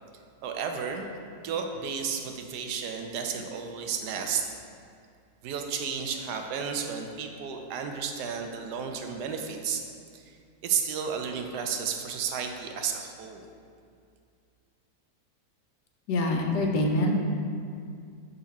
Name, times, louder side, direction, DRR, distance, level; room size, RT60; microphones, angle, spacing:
voice 1, 0.4-1.1 1.4-4.4 5.4-9.8 10.1-10.3 10.6-13.5, right 6 dB, 80° right, 4 dB, 1.2 m, -32 dB
voice 2, 16.1-17.2, left 1 dB, 80° left, 2 dB, 1.3 m, -25 dB
6.5 x 4.1 x 4.0 m, 2.3 s
omnidirectional pair, 1.8 m